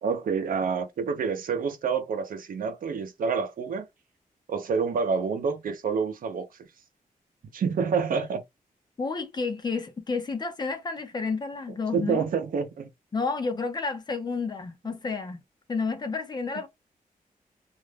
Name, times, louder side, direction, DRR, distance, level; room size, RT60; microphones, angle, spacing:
voice 1, 0.0-3.9 4.5-6.5 7.5-8.4 11.9-12.9, right 5 dB, 75° right, 0.6 m, -28 dB
voice 2, 9.0-12.2 13.1-15.4 15.7-16.7, left 4 dB, 30° left, 0.6 m, -30 dB
2.5 x 2.1 x 3.3 m
wide cardioid pair, 180°, 15 cm